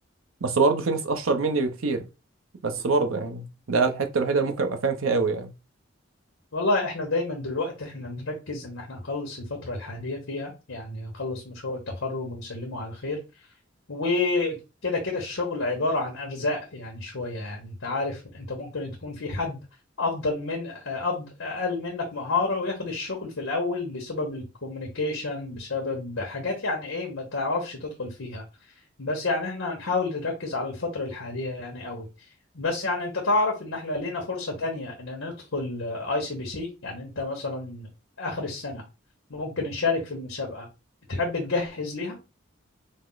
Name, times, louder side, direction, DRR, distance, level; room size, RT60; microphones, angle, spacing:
voice 1, 0.4-2.1 2.6-5.5, right 4 dB, 85° right, 0.7 m, -24 dB
voice 2, 6.5-13.2 13.9-14.6 14.8-19.6 20.0-28.4 29.0-32.1 32.5-37.9 38.2-38.8 39.3-40.7 41.1-42.2, left 3 dB, 80° left, 1.1 m, -30 dB
5.2 x 2.1 x 3.9 m
head